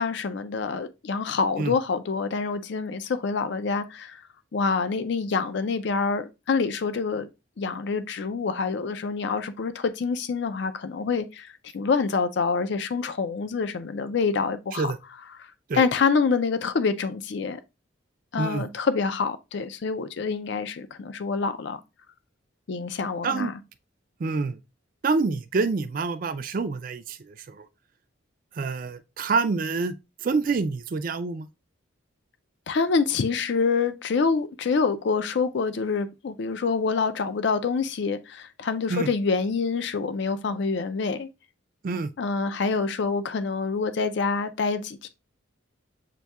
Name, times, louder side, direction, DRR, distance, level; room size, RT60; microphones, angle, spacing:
voice 1, 0.0-4.2 4.5-7.3 7.6-14.9 15.4-15.5 15.7-17.6 18.3-21.8 22.7-23.5 32.7-41.3 42.2-45.1, left 5 dB, 55° left, 0.4 m, -26 dB
voice 2, 18.4-18.7 23.2-23.5 24.2-24.6 25.0-27.7 28.6-29.9 30.2-31.5 38.9-39.1 41.8-42.1, right 4 dB, 40° right, 0.3 m, -27 dB
6.7 x 2.6 x 2.3 m
head